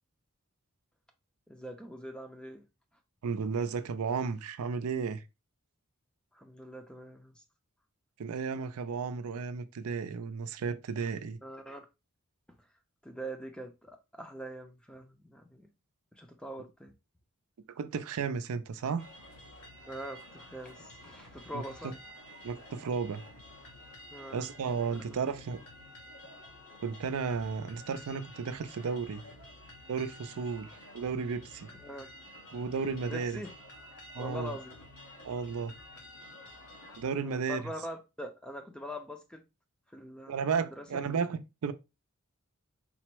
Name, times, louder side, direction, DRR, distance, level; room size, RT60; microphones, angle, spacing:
voice 1, 1.5-2.7 6.3-7.4 11.4-11.9 12.6-12.7 13.0-15.7 16.1-16.9 19.9-21.9 24.1-25.0 31.8-32.1 33.1-33.5 34.2-34.9 37.2-39.4 39.9-41.0, equal, 5° left, 0.5 m, -43 dB
voice 2, 3.2-5.2 8.2-11.4 17.8-19.0 21.5-21.6 22.4-23.2 24.3-25.6 26.8-29.2 29.9-30.7 30.9-31.7 32.5-33.4 34.1-34.5 35.2-35.7 37.0-37.6 40.3-41.7, right 5 dB, 75° right, 0.4 m, -33 dB
sound 1, 19.0-37.0, left 1 dB, 90° left, 1.3 m, -51 dB
4.1 x 2.0 x 4.4 m
head